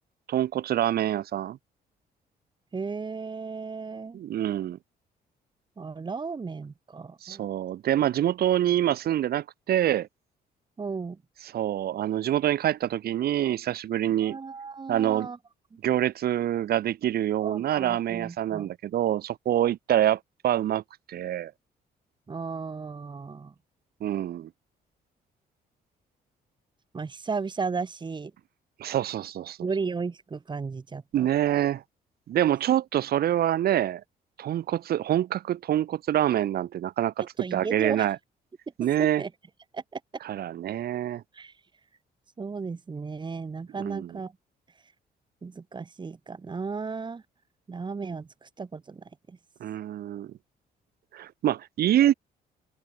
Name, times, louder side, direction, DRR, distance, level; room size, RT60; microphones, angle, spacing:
voice 1, 0.3-1.6 4.1-4.8 7.2-10.1 11.4-14.4 14.9-15.3 15.8-20.8 21.1-21.5 24.0-24.5 28.8-29.6 31.1-31.8 32.3-34.0 34.4-38.2 38.8-39.2 40.2-41.2 43.8-44.1 49.6-50.3 51.1-52.1, right 12 dB, 65° right, 2.0 m, -26 dB
voice 2, 2.7-4.2 5.8-7.5 10.8-11.2 14.2-15.4 17.4-18.7 22.3-23.5 26.9-28.3 29.6-31.3 37.4-38.1 39.0-39.3 39.7-40.0 41.3-41.5 42.4-44.3 45.4-47.2 47.7-49.4, right 4 dB, 25° right, 5.7 m, -35 dB
open air
cardioid pair, 130°, 17 cm